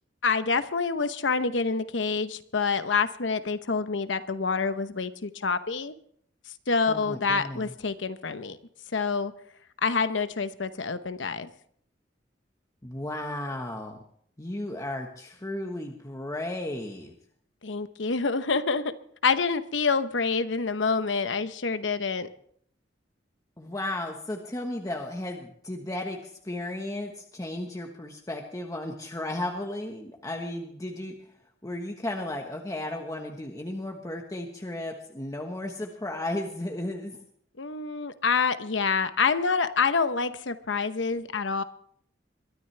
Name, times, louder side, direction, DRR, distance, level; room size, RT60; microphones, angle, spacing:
voice 1, 0.2-5.9 6.7-8.6 8.9-9.3 9.8-11.5 17.6-19.0 19.2-22.3 37.6-41.6, left 4 dB, 90° left, 11 dB, 0.9 m, -27 dB
voice 2, 6.9-7.7 12.8-14.0 14.4-17.1 23.6-31.1 31.6-37.2, left 1 dB, 20° left, 2 dB, 1.3 m, -34 dB
22.5 x 13.0 x 3.4 m, 0.63 s
head